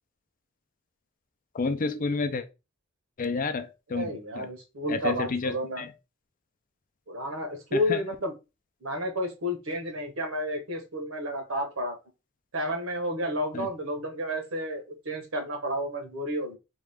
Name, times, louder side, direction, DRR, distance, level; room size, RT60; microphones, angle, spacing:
voice 1, 1.5-2.4 3.2-4.1 4.4-4.5 4.9-5.9 7.7-8.0 13.5-13.7, left 4 dB, 40° left, 0.5 m, -30 dB
voice 2, 3.9-5.8 7.1-8.3 8.8-11.9 12.5-16.6, equal, 80° right, 1.1 m, -31 dB
3.6 x 2.4 x 3.4 m
head